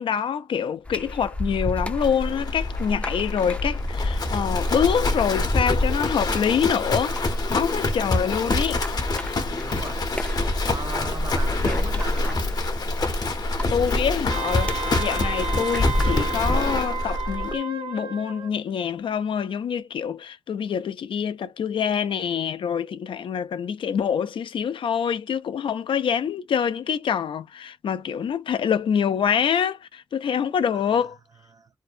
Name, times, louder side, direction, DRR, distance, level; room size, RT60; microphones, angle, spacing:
voice 1, 0.0-8.8 13.7-31.2, left 7 dB, 80° left, 0.3 m, -26 dB
sound 1, 0.9-16.6, left 1 dB, 15° left, 0.4 m, -30 dB
Livestock farm animals working animals, 2.0-17.5, left 2 dB, 50° left, 0.7 m, -27 dB
voice 2, 9.5-10.0 10.6-12.4 31.5-31.7, right 4 dB, 45° right, 0.4 m, -37 dB
Wind instrument woodwind instrument, 14.3-18.5, right 5 dB, 85° right, 0.7 m, -32 dB
2.6 x 2.1 x 2.5 m
wide cardioid pair, 95°, 9 cm